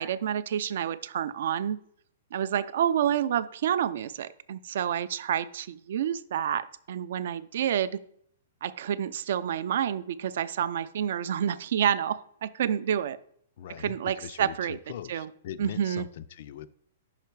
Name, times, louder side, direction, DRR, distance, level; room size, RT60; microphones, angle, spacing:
voice 1, 0.0-1.8 2.3-8.0 8.6-13.2 13.8-14.8 15.1-15.3 15.6-16.1, right 9 dB, 50° right, 15 dB, 0.3 m, -29 dB
voice 2, 13.6-16.7, left 10 dB, 40° left, 15 dB, 0.3 m, -41 dB
5.7 x 5.1 x 4.5 m, 0.64 s
hypercardioid pair, 180°, 0 cm